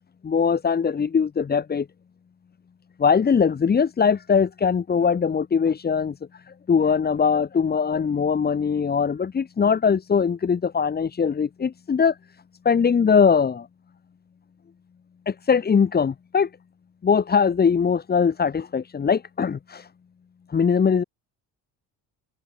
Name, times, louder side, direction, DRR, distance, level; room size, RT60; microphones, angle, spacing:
voice 1, 0.2-1.9 3.0-6.2 6.7-12.1 12.6-13.7 15.3-16.5 17.0-19.8 20.5-21.0, left 6 dB, 20° left, 0.6 m, -21 dB
open air
hypercardioid pair, 55°, 48 cm